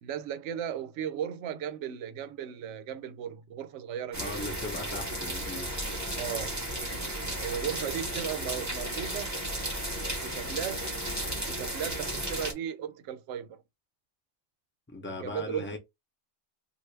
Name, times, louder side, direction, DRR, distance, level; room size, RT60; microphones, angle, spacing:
voice 1, 0.0-4.3 6.2-6.6 7.4-9.4 10.2-10.9 11.5-13.6 15.2-15.8, right 9 dB, 75° right, 0.9 m, -36 dB
voice 2, 4.1-5.7 14.9-15.8, left 2 dB, 10° left, 0.7 m, -38 dB
sound 1, 4.1-12.5, right 1 dB, 15° right, 0.8 m, -34 dB
3.2 x 2.5 x 3.2 m
omnidirectional pair, 1.3 m